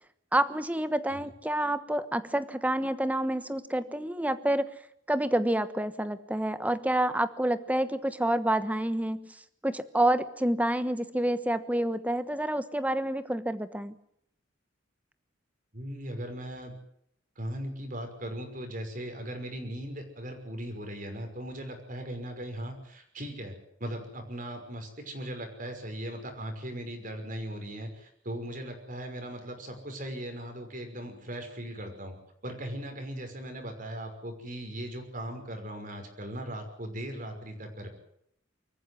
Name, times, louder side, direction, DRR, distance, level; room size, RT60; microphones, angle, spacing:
voice 1, 0.3-4.7 5.1-9.4 9.6-13.9, right 1 dB, 10° right, 12 dB, 1.2 m, -28 dB
voice 2, 15.7-16.7 17.4-32.1 32.4-37.9, right 1 dB, 45° right, 5 dB, 5.8 m, -38 dB
24.5 x 14.5 x 9.6 m, 0.71 s
head